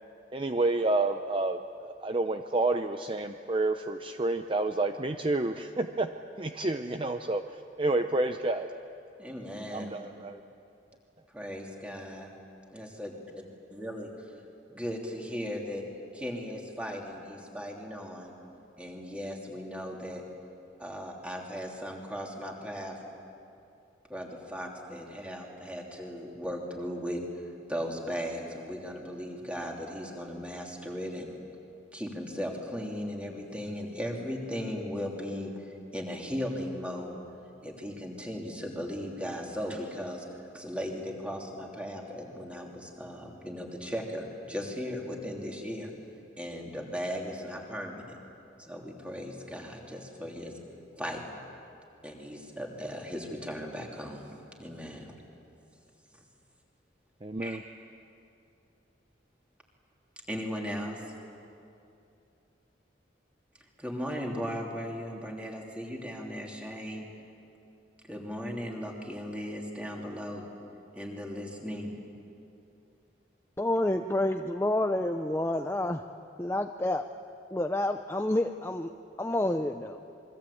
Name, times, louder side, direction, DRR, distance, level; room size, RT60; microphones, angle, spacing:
voice 1, 0.3-6.1 6.4-8.7 9.7-10.4 57.2-57.6, right 2 dB, 30° right, 7 dB, 0.6 m, -29 dB
voice 2, 9.2-10.0 11.3-12.3 12.7-13.2 13.7-14.1 14.7-15.8 16.1-18.3 18.8-20.2 20.8-23.0 24.1-27.2 27.7-31.3 31.9-37.2 37.6-45.9 46.4-48.2 48.6-50.5 51.0-51.2 52.0-54.3 54.6-55.1 57.4-57.6 60.3-61.0 63.8-67.1 68.0-70.4 70.9-71.9, equal, 5° right, 0 dB, 3.1 m, -37 dB
voice 3, 73.6-76.0 76.4-77.1 77.5-78.9 79.2-80.0, left 1 dB, 15° left, 6 dB, 0.6 m, -29 dB
27.5 x 23.0 x 8.5 m, 2.7 s
head